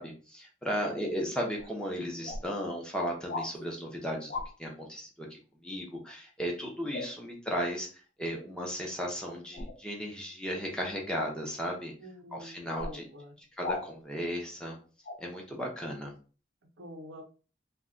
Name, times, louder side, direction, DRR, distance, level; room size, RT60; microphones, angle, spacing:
voice 1, 0.0-4.3 4.6-5.3 5.6-7.9 8.2-11.9 12.3-13.0 13.6-14.8 15.2-16.1, equal, 5° left, -1 dB, 0.6 m, -35 dB
voice 2, 0.7-1.1 12.0-13.3 16.8-17.2, equal, 85° right, 2 dB, 0.6 m, -46 dB
sound 1, 1.6-1.7 2.2-2.4 3.3-3.5 4.3-4.5 6.9-7.1 9.5-9.8 11.1-11.3 12.7-13.0 13.6-13.8 15.1-15.2, left 3 dB, 50° left, 0.5 m, -36 dB
2.2 x 2.2 x 3.6 m, 0.37 s
head